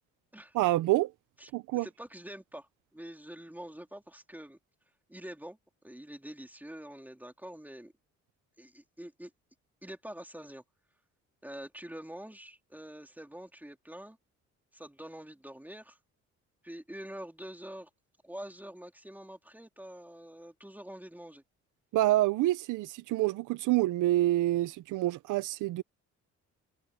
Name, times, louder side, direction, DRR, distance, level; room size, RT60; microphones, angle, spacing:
voice 1, 0.5-1.1 1.5-1.9 21.9-25.8, right 16 dB, 90° right, 0.7 m, -27 dB
voice 2, 1.4-4.6 5.1-5.6 5.8-7.9 8.6-9.3 9.8-10.6 11.4-14.2 14.7-16.0 16.6-17.9 18.2-21.4, right 1 dB, 5° right, 3.3 m, -46 dB
cardioid pair, 90°, 30 cm